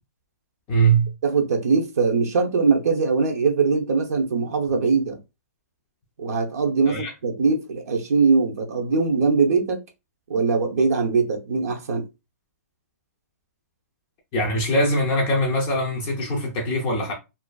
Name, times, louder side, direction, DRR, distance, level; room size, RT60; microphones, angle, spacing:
voice 1, 0.7-1.1 6.9-7.1 14.3-17.1, right 2 dB, 20° left, 0.5 m, -22 dB
voice 2, 1.2-5.2 6.2-9.8 10.3-12.1, right 4 dB, 70° right, 0.6 m, -21 dB
2.5 x 2.4 x 2.2 m
hypercardioid pair, 160°, 9 cm